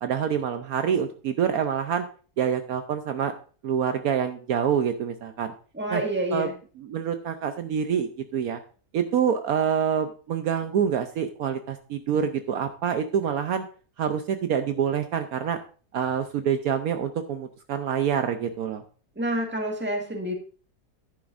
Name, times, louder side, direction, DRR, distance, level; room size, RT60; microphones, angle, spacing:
voice 1, 0.0-2.0 2.4-3.3 3.6-5.5 5.9-6.0 6.3-6.5 6.8-8.6 8.9-13.6 14.0-15.6 15.9-18.8, right 8 dB, 70° right, 7 dB, 1.1 m, -26 dB
voice 2, 5.7-6.5 19.1-20.3, right 1 dB, 5° right, 1 dB, 1.6 m, -28 dB
11.0 x 10.5 x 2.5 m, 0.39 s
omnidirectional pair, 1.7 m